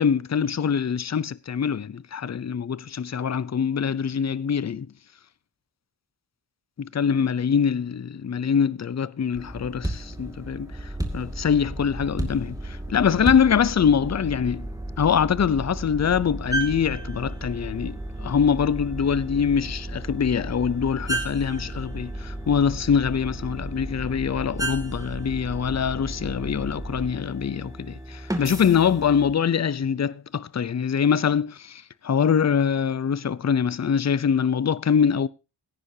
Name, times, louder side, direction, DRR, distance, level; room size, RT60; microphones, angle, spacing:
voice 1, 0.0-4.9 6.8-10.7 11.1-14.7 15.0-35.3, left 7 dB, 40° left, 0.6 m, -24 dB
sound 1, 9.3-29.3, right 1 dB, 10° right, 2.3 m, -33 dB
17.0 x 10.5 x 2.8 m
wide cardioid pair, 95°, 41 cm